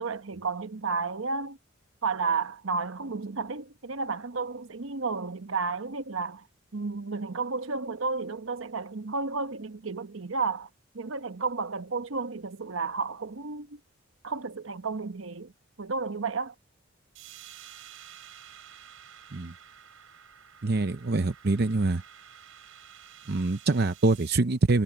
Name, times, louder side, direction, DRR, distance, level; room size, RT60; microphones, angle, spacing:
voice 1, 0.0-1.6 2.0-6.5 6.7-10.7 10.9-13.8 14.2-15.5 15.8-16.5, right 4 dB, 70° right, 1.0 m, -32 dB
sound 1, 17.1-24.3, right 9 dB, 85° right, 3.9 m, -50 dB
voice 2, 20.6-22.0 23.3-24.8, right 3 dB, 50° right, 0.7 m, -25 dB
head